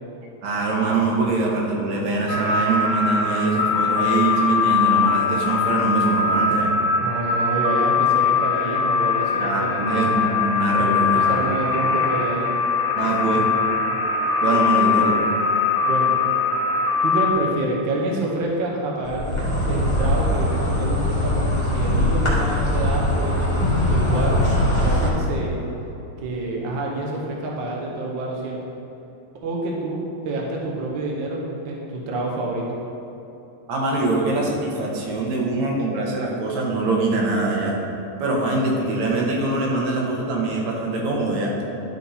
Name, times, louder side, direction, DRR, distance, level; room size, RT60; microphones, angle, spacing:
voice 1, 0.4-6.8 9.3-11.3 13.0-13.4 14.4-15.2 33.7-37.8 38.2-41.5, right 3 dB, 75° right, -2 dB, 2.4 m, -23 dB
sound 1, 2.3-17.3, left 5 dB, 80° left, 1.0 m, -21 dB
voice 2, 7.0-10.3 10.8-12.5 15.8-16.2 17.0-24.4 24.8-25.5 26.2-28.6 29.4-32.6, right 2 dB, 55° right, -2 dB, 1.3 m, -27 dB
Insect, 19.0-25.1, left 1 dB, 15° left, 1.2 m, -21 dB
11.5 x 4.6 x 4.2 m, 3.0 s
omnidirectional pair, 3.3 m